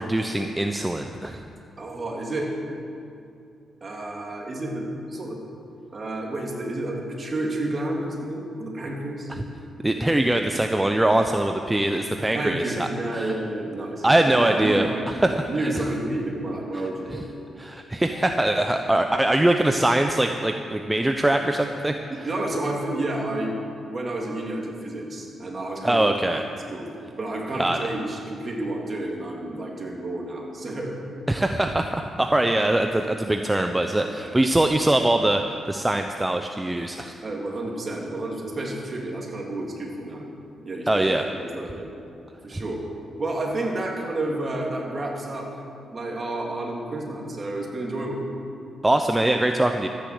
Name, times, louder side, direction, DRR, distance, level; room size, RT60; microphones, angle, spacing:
voice 1, 0.0-1.4 9.8-13.3 14.0-15.7 17.1-17.2 17.6-21.9 25.8-26.4 27.6-27.8 31.3-37.1 40.9-41.3 42.5-42.6 48.8-49.9, right 1 dB, 10° right, 5 dB, 0.7 m, -22 dB
voice 2, 1.8-2.5 3.8-5.4 5.9-9.3 12.3-15.1 15.5-17.2 22.1-23.6 23.9-26.1 26.7-26.9 27.2-31.0 34.1-34.4 37.2-40.3 40.6-41.0 41.3-41.9 42.4-42.8 43.2-45.5 45.9-48.2, right 1 dB, 35° right, -1 dB, 3.2 m, -30 dB
13.5 x 10.0 x 7.8 m, 2.6 s
cardioid pair, 95°, 0 cm